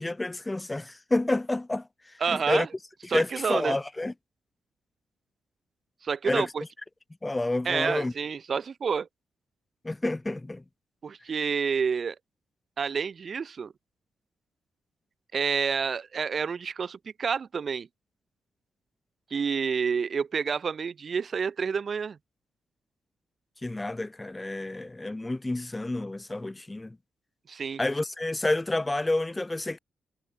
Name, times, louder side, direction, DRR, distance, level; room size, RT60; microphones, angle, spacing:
voice 1, 0.0-1.9 2.3-2.7 3.1-4.1 6.2-6.5 7.2-8.1 9.8-10.6 23.6-27.0 27.8-29.8, left 2 dB, 10° left, 2.7 m, -29 dB
voice 2, 2.2-2.7 3.1-3.8 6.0-6.6 7.6-9.1 11.0-12.2 12.8-13.7 15.3-17.9 19.3-22.2 27.5-27.8, right 6 dB, 35° right, 0.7 m, -29 dB
wide cardioid pair, 165°, 0 cm